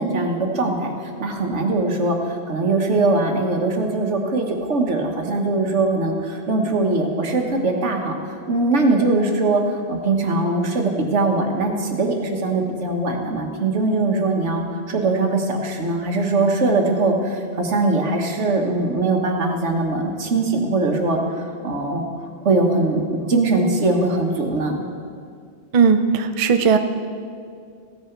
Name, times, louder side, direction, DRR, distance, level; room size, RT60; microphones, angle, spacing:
voice 1, 0.0-8.2 8.5-22.0 22.4-24.8, right 2 dB, 80° right, 2 dB, 1.6 m, -21 dB
voice 2, 25.7-26.8, right 6 dB, 40° right, 8 dB, 0.5 m, -16 dB
15.5 x 10.5 x 4.5 m, 2.2 s
omnidirectional pair, 1.2 m